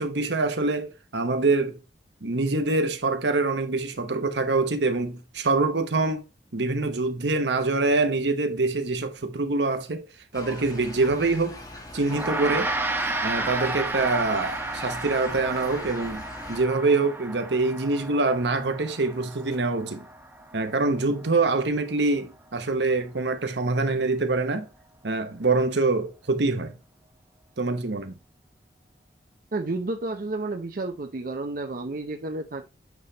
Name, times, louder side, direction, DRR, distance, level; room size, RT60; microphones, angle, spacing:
voice 1, 0.0-1.8 2.2-6.2 6.5-10.1 10.3-11.6 11.9-12.7 13.2-16.2 16.5-20.0 20.5-24.7 25.0-26.8 27.6-28.2, right 3 dB, 80° right, 1.1 m, -25 dB
sound 1, 10.3-16.6, left 1 dB, 20° left, 1.4 m, -40 dB
Gong, 12.1-21.6, right 2 dB, 10° right, 0.9 m, -33 dB
voice 2, 29.5-32.7, right 2 dB, 50° right, 0.6 m, -31 dB
8.2 x 3.4 x 4.0 m
head